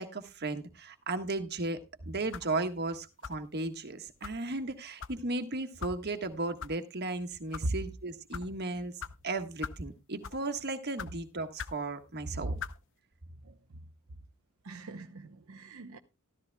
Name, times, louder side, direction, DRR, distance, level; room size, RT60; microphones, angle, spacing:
voice 1, 0.0-1.8 2.0-8.9 9.2-12.6, right 2 dB, 50° right, 1.5 m, -35 dB
sound 1, 2.3-2.6 3.2-3.5 4.2-4.4 5.0-5.2 5.8-6.0 6.6-6.7 7.3-7.7 8.3-8.5 9.0-9.1 9.6-9.8 10.2-10.5 11.0-11.1 11.6-11.8 12.6-12.8, left 6 dB, 60° left, 0.7 m, -40 dB
voice 2, 14.6-16.0, right 2 dB, 70° right, 0.8 m, -37 dB
14.0 x 13.5 x 2.3 m
head